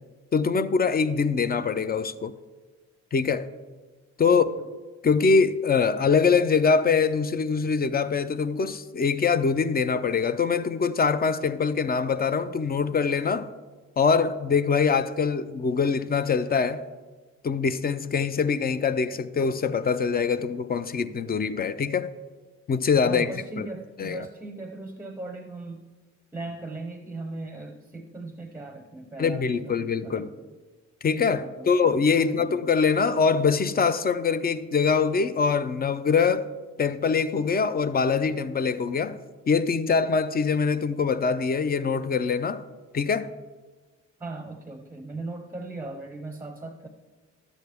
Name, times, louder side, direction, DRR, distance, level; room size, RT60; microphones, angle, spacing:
voice 1, 0.3-2.3 3.1-3.5 4.2-4.4 5.0-13.5 14.0-16.8 17.4-22.1 22.7-23.7 24.0-24.2 29.2-30.3 31.0-36.5 36.8-39.2 39.5-42.6 42.9-43.3, left 5 dB, 30° left, 0.5 m, -23 dB
voice 2, 4.3-4.7 23.0-25.9 26.3-30.3 31.4-32.6 44.2-46.9, right 2 dB, 5° right, 0.7 m, -38 dB
11.5 x 8.2 x 3.4 m
cardioid pair, 90°, 30 cm